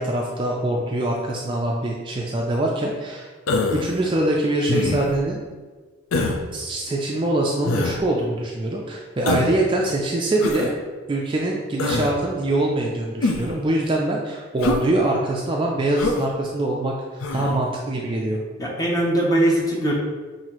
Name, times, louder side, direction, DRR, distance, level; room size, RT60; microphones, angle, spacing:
voice 1, 0.0-3.3 3.7-5.4 6.5-10.7 11.1-17.0 17.3-18.4, right 1 dB, 25° right, -2 dB, 0.3 m, -23 dB
Human voice, 3.5-4.0 4.7-5.2 6.1-6.4 7.7-8.0 9.3-9.6 10.4-10.7 11.8-12.1 13.2-13.6 14.6-14.9 16.0-16.3 17.2-17.5, left 2 dB, 85° left, 0.5 m, -24 dB
voice 2, 18.6-19.9, right 1 dB, 20° left, -4 dB, 0.7 m, -21 dB
5.7 x 2.6 x 2.9 m, 1.4 s
head